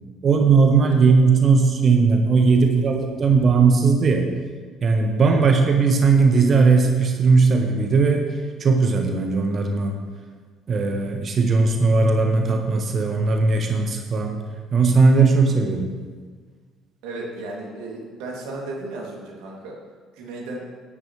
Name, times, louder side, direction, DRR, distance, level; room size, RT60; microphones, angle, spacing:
voice 1, 0.2-4.3 4.8-8.2 8.6-10.0 10.7-14.4 14.7-15.9, right 4 dB, 40° right, 4 dB, 1.4 m, -18 dB
voice 2, 17.0-19.7 20.2-20.6, right 2 dB, 65° right, -2 dB, 2.8 m, -34 dB
16.5 x 11.0 x 3.3 m, 1.5 s
figure-of-eight pair, 50°, 0 cm